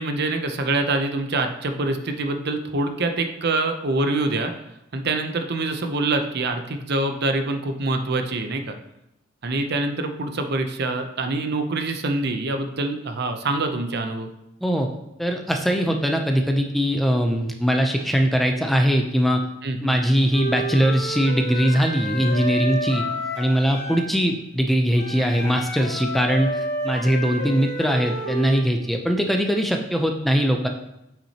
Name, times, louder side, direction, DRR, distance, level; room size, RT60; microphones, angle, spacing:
voice 1, 0.0-4.5 4.9-8.7 9.4-14.3 19.6-20.0, right 2 dB, 55° right, 7 dB, 0.7 m, -25 dB
voice 2, 15.2-19.4 19.8-23.0 23.4-30.7, equal, ahead, 3 dB, 0.5 m, -21 dB
Wind instrument woodwind instrument, 20.3-24.1 25.0-28.6, equal, 55° left, 1.3 m, -30 dB
8.2 x 6.0 x 2.9 m, 0.86 s
head